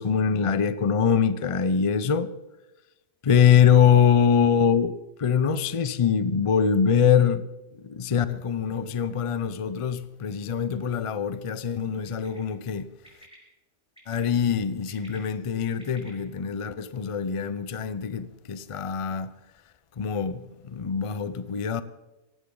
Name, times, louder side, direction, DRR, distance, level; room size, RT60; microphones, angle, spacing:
voice 1, 0.0-2.3 3.2-4.9 5.2-7.4 7.8-12.9 14.1-19.3 20.0-21.8, left 7 dB, 40° left, 0.5 m, -23 dB
Bird, 12.1-12.4 13.0-13.3 14.0-14.3 14.7-16.1, equal, 5° right, 4.8 m, -51 dB
18.0 x 15.0 x 3.8 m
omnidirectional pair, 1.2 m